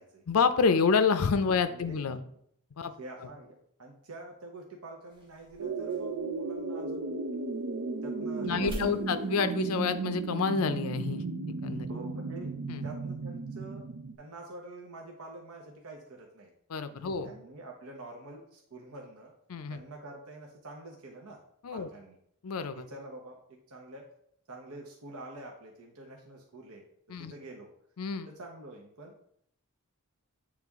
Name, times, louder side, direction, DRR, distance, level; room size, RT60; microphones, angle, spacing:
voice 1, 0.3-2.2 2.8-2.9 8.4-11.2 11.6-11.9 12.7-12.8 16.7-17.3 19.5-19.8 21.6-21.9 22.4-22.8 27.1-27.3 28.0-28.3, left 5 dB, 85° left, 11 dB, 0.5 m, -28 dB
voice 2, 1.7-2.3 2.8-7.1 8.0-9.3 11.9-12.5 12.8-13.8 14.2-16.5 16.9-19.3 19.7-21.4 21.7-22.2 22.7-24.0 24.5-26.8 27.2-27.7 28.3-29.1, right 2 dB, 90° right, 0 dB, 0.9 m, -47 dB
sound 1, 5.1-10.4, equal, 20° right, 1.3 m, -48 dB
sound 2, 5.6-14.1, right 3 dB, 75° right, 0.6 m, -35 dB
8.4 x 3.3 x 3.6 m, 0.69 s
head